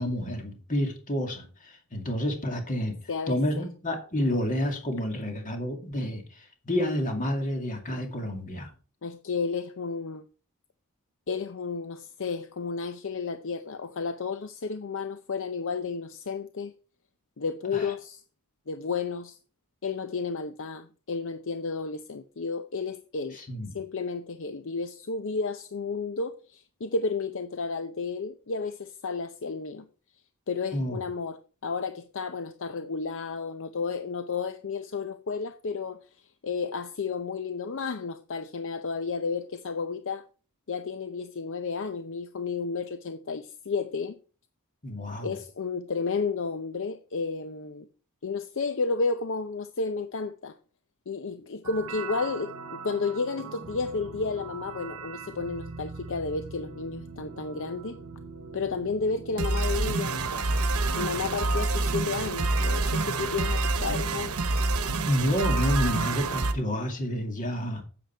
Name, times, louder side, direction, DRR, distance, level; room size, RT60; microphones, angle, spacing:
voice 1, 0.0-3.0 3.3-8.7 17.7-17.9 23.3-23.7 30.7-31.0 44.8-45.3 65.0-67.8, equal, 35° left, 2.4 m, -29 dB
voice 2, 3.1-3.7 9.0-10.2 11.3-16.7 17.4-18.2 18.7-19.4 19.8-23.4 23.7-29.9 30.5-40.3 40.7-44.2 45.2-47.9 48.2-50.5 51.1-58.0 58.5-60.5 61.0-64.4, left 4 dB, 60° left, 0.6 m, -32 dB
sound 1, 51.7-66.5, right 3 dB, 80° right, 1.0 m, -30 dB
10.0 x 7.9 x 4.5 m
head